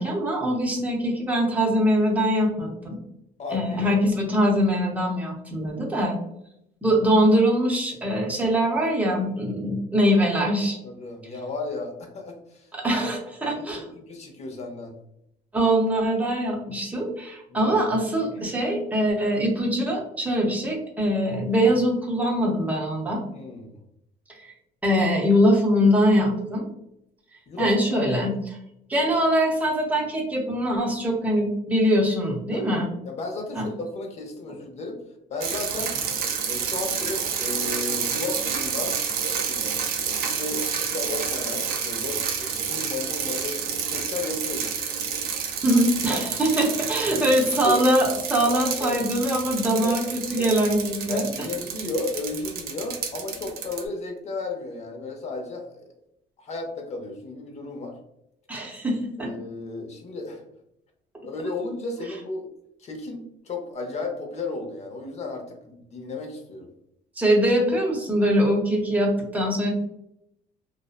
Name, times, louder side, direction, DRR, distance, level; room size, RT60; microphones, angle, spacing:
voice 1, 0.0-3.0 3.5-6.2 6.8-10.8 12.7-13.9 15.5-23.2 24.8-26.7 27.6-28.3 28.9-32.9 33.6-33.7 45.6-51.3 58.5-59.3 67.2-69.7, equal, 10° right, -2 dB, 0.7 m, -22 dB
voice 2, 3.4-4.0 10.6-12.7 13.5-15.0 17.5-17.7 18.3-18.6 23.3-23.8 27.5-28.2 32.5-35.0 35.3-35.9 36.4-39.0 39.4-39.6 40.1-44.7 46.1-46.2 47.1-47.2 47.6-47.9 48.4-48.5 48.8-49.0 49.8-50.0 50.4-50.5 51.1-55.8 56.4-58.0 59.2-60.4 61.2-62.4 62.8-66.7, left 3 dB, 40° left, 3 dB, 0.7 m, -34 dB
sound 1, 35.4-53.8, right 7 dB, 65° right, 0.5 m, -29 dB
2.6 x 2.1 x 2.4 m, 0.79 s
cardioid pair, 110°, 17 cm